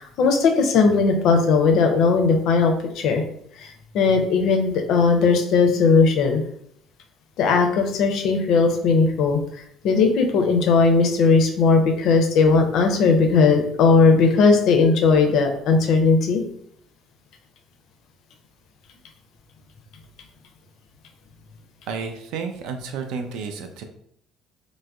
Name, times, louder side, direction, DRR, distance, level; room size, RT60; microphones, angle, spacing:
voice 1, 0.0-3.2 3.6-6.4 7.4-16.4, left 4 dB, 55° left, 4 dB, 0.4 m, -18 dB
voice 2, 21.9-23.8, right 5 dB, 60° right, 6 dB, 0.3 m, -31 dB
3.3 x 2.1 x 2.3 m, 0.69 s
figure-of-eight pair, 50°, 0 cm